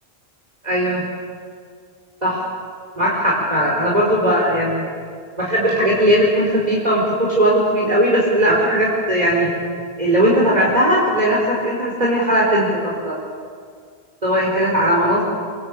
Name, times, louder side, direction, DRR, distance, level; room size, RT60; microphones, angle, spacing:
voice 1, 0.6-1.0 2.2-2.4 3.0-4.8 5.4-9.5 10.0-13.2 14.2-15.2, equal, 40° right, -5 dB, 4.7 m, -18 dB
26.5 x 24.5 x 8.7 m, 2.1 s
omnidirectional pair, 1.0 m